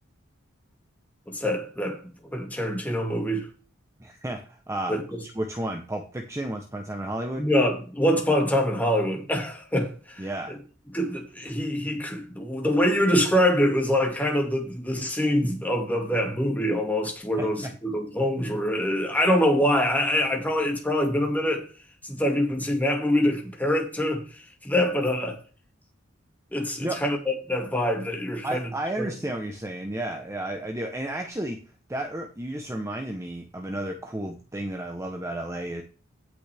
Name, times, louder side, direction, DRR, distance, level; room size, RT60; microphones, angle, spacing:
voice 1, 1.3-2.0 2.3-3.5 4.9-5.2 7.4-10.6 10.9-21.7 22.0-24.2 24.6-25.4 26.5-28.7 29.0-29.1, equal, 10° left, 2.2 m, -25 dB
voice 2, 4.0-5.0 5.2-7.5 10.2-10.6 17.4-17.7 26.8-27.0 28.4-31.6 31.9-35.8, right 1 dB, 15° right, 0.9 m, -32 dB
16.5 x 6.1 x 3.5 m
head